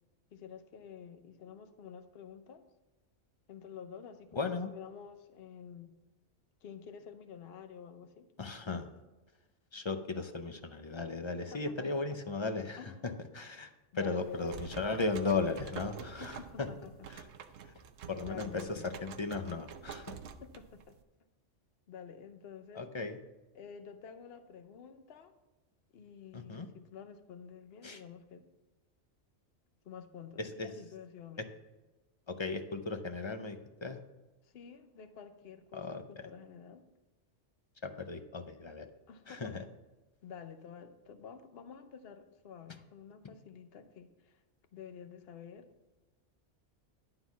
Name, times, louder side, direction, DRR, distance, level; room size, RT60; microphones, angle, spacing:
voice 1, 0.3-2.6 3.5-6.0 6.6-8.3 11.5-12.0 12.8-13.2 13.9-14.7 16.0-17.1 18.2-18.9 20.4-21.0 21.9-22.9 23.5-25.3 25.9-28.5 29.8-31.5 34.4-36.8 39.1-39.5 40.2-44.4 44.7-45.7, left 7 dB, 60° left, 9 dB, 0.9 m, -49 dB
voice 2, 4.3-4.7 8.4-8.9 9.7-16.7 17.1-17.3 17.6-17.7 18.1-20.2 22.8-23.2 26.3-26.7 27.8-28.0 30.4-30.7 32.3-34.0 35.7-36.3 37.8-38.9 39.3-39.6, left 3 dB, 35° left, 7 dB, 0.4 m, -36 dB
sound 1, 14.2-21.0, right 7 dB, 70° right, 0.9 m, -48 dB
11.0 x 3.9 x 7.1 m, 1.1 s
omnidirectional pair, 1.2 m